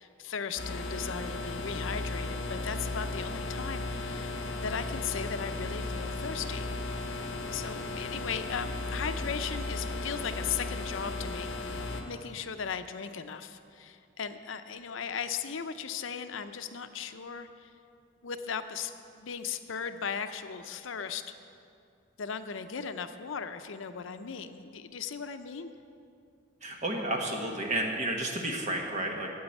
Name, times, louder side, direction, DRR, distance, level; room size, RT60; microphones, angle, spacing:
voice 1, 0.0-7.1 7.5-11.5 12.0-17.7 18.2-18.9 19.2-21.4 22.2-25.7, left 6 dB, 75° left, 9 dB, 0.6 m, -37 dB
sound 1, 0.6-12.0, left 2 dB, 55° left, 1.3 m, -35 dB
voice 2, 26.6-29.3, right 1 dB, 35° right, 1 dB, 1.3 m, -31 dB
9.5 x 8.0 x 9.0 m, 2.5 s
head